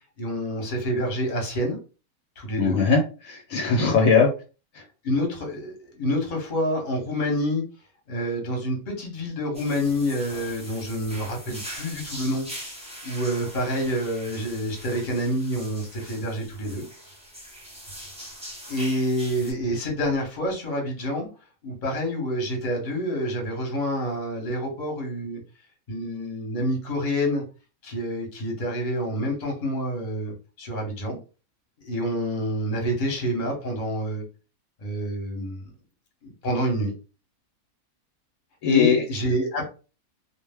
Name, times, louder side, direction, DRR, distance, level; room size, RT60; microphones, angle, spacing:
voice 1, 0.2-1.8 2.4-2.8 5.0-7.6 8.1-16.8 18.7-21.3 21.6-25.4 25.9-27.4 27.8-31.2 31.8-34.2 34.8-35.6 36.2-36.9 38.6-39.7, equal, 35° left, 0 dB, 1.0 m, -27 dB
voice 2, 2.6-4.3 38.6-39.0, left 5 dB, 75° left, 2 dB, 1.1 m, -20 dB
sound 1, 9.5-19.5, equal, 5° right, 0.7 m, -41 dB
2.4 x 2.0 x 3.4 m, 0.33 s
omnidirectional pair, 1.5 m